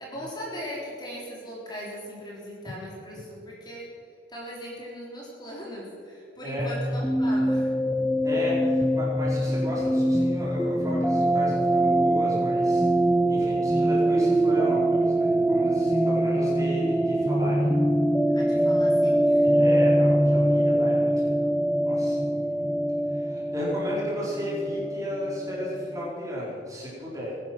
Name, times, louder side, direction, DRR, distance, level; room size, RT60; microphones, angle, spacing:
voice 1, 0.0-7.7 18.3-19.5, equal, 25° left, -5 dB, 3.8 m, -39 dB
sound 1, 6.6-26.1, right 1 dB, ahead, 0.5 m, -23 dB
voice 2, 8.2-12.8 13.3-17.8 19.4-21.5 21.8-22.6 23.1-27.3, equal, 20° right, -6 dB, 4.8 m, -34 dB
21.5 x 10.5 x 6.1 m, 2.6 s
head